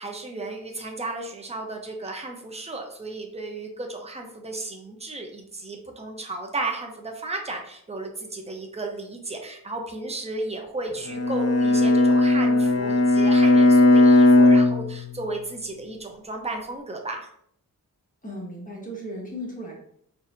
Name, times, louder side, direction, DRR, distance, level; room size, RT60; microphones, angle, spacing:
voice 1, 0.0-17.3, right 2 dB, 20° right, 2 dB, 0.7 m, -34 dB
Bowed string instrument, 11.1-15.4, left 2 dB, 45° left, 0.7 m, -17 dB
voice 2, 18.2-19.7, equal, 20° left, -3 dB, 1.2 m, -36 dB
4.1 x 2.7 x 2.6 m, 0.68 s
cardioid pair, 60°, 36 cm